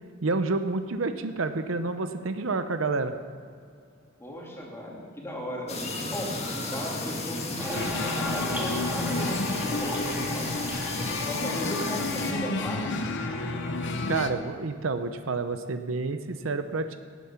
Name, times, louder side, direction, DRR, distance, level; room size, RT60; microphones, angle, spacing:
voice 1, 0.2-3.1 14.1-16.9, right 3 dB, 75° right, 9 dB, 0.7 m, -29 dB
voice 2, 4.2-5.8 6.1-10.5 11.1-12.9, equal, 15° left, -3 dB, 2.7 m, -36 dB
sound 1, 5.7-12.3, left 2 dB, 30° left, 1.7 m, -34 dB
sound 2, 7.6-14.2, right 1 dB, 10° right, 2.1 m, -38 dB
sound 3, 7.7-14.3, left 3 dB, 60° left, 0.9 m, -31 dB
17.5 x 9.4 x 5.8 m, 2.2 s
head